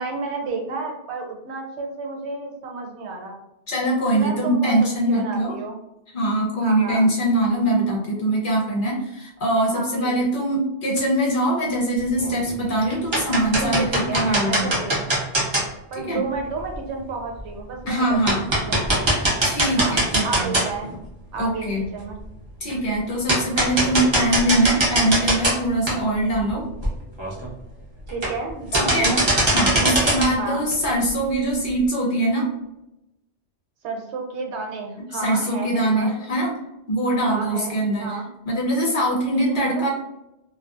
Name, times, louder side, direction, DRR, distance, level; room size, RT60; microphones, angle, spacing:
voice 1, 0.0-3.4 4.1-4.8 5.1-5.8 6.6-7.1 9.7-10.2 13.6-15.0 15.9-18.2 18.7-19.1 19.8-20.0 20.2-20.9 21.3-22.2 28.1-29.2 30.4-30.7 33.8-36.1 37.2-38.3 39.5-39.9, right 4 dB, 75° right, 1 dB, 0.9 m, -31 dB
voice 2, 3.7-5.6 6.1-13.9 14.1-14.7 16.1-16.2 17.9-18.5 19.4-20.5 21.4-21.8 22.6-26.6 28.7-29.1 29.5-32.5 35.2-36.5 36.9-38.2 38.5-39.9, right 1 dB, 55° left, -2 dB, 0.7 m, -22 dB
sound 1, 12.2-12.6 12.9-15.6 16.7-16.8 17.4-17.5 17.9-18.0 18.3-20.9 21.4-21.5 22.7-22.8 23.3-25.6 25.9-26.0 26.5-26.6 26.8-26.9 27.2-27.5 28.1-28.5 28.7-30.3, right 1 dB, 30° right, 0.6 m, -21 dB
2.5 x 2.2 x 2.4 m, 0.90 s
omnidirectional pair, 1.2 m